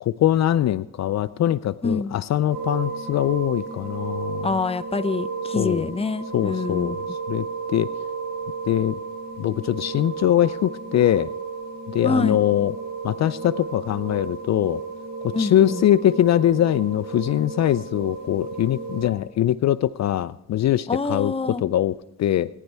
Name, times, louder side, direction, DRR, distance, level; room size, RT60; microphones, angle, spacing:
voice 1, 0.0-4.5 5.6-5.9 6.3-7.0 7.3-7.4 7.7-7.9 8.7-8.9 9.4-11.3 11.9-12.8 13.0-14.8 15.2-22.5, left 12 dB, 60° left, 16 dB, 0.5 m, -22 dB
voice 2, 1.8-2.2 4.4-7.0 12.0-12.4 15.3-15.8 20.9-21.6, left 4 dB, 20° left, 14 dB, 0.7 m, -26 dB
sound 1, 2.5-19.1, right 4 dB, 75° right, 6.3 m, -33 dB
19.5 x 10.5 x 3.4 m, 0.87 s
cardioid pair, 75°, 31 cm